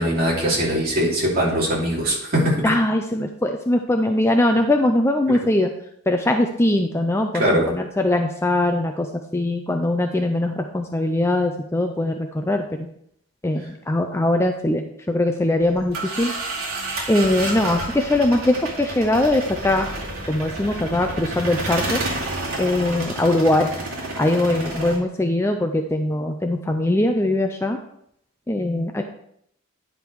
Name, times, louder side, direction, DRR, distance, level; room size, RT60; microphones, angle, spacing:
voice 1, 0.0-2.6 5.3-5.4 7.4-7.7, equal, 40° right, -4 dB, 2.8 m, -21 dB
voice 2, 2.6-5.7 6.1-12.9 13.4-16.3 17.1-19.9 20.3-22.0 22.6-23.7 24.1-27.8 28.5-29.0, left 1 dB, 10° left, 5 dB, 0.4 m, -21 dB
sound 1, 15.6-25.0, right 2 dB, 70° right, 2.4 m, -30 dB
10.0 x 5.1 x 4.6 m, 0.72 s
head